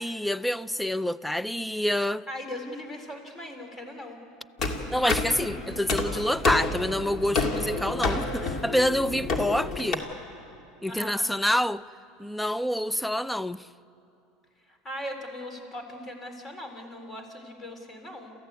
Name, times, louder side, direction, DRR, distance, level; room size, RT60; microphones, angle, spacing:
voice 1, 0.0-2.2 4.9-10.0 10.8-11.8 12.2-13.6, left 1 dB, 5° left, 0.5 m, -27 dB
voice 2, 2.3-4.2 10.9-11.3 14.7-18.3, left 1 dB, 25° left, 3.9 m, -39 dB
sound 1, 4.6-9.9, left 3 dB, 45° left, 2.7 m, -29 dB
28.5 x 15.0 x 8.3 m
supercardioid pair, 105°, 0 cm